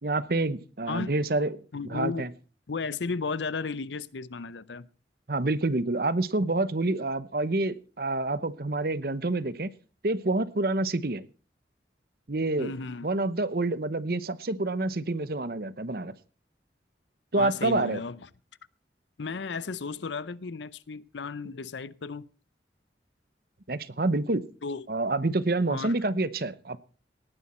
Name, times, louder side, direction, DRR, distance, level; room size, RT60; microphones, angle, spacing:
voice 1, 0.0-1.6 1.8-2.3 5.3-9.7 10.0-11.3 12.3-12.7 13.0-16.2 17.3-18.0 23.7-24.4 24.9-26.8, right 2 dB, 55° right, 0.9 m, -27 dB
voice 2, 0.9-1.2 1.7-2.3 2.7-4.9 12.6-13.1 17.4-18.2 19.2-22.3 24.6-24.9 25.7-25.9, left 4 dB, 85° left, 0.6 m, -34 dB
19.0 x 10.0 x 4.3 m
head